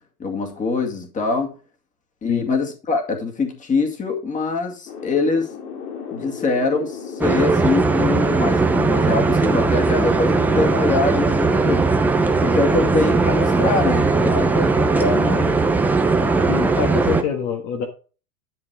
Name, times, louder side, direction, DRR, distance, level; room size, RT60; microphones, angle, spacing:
voice 1, 0.2-1.5 2.2-5.5 6.1-11.8 12.4-15.6 16.1-16.9, left 3 dB, 15° left, 3 dB, 2.2 m, -24 dB
sound 1, 4.9-16.4, left 6 dB, 75° left, 3.1 m, -35 dB
sound 2, 7.2-17.2, right 3 dB, 5° right, 0.6 m, -19 dB
voice 2, 16.5-17.9, left 7 dB, 35° left, 3 dB, 1.6 m, -25 dB
11.0 x 5.8 x 4.8 m, 0.35 s
hypercardioid pair, 135°, 46 cm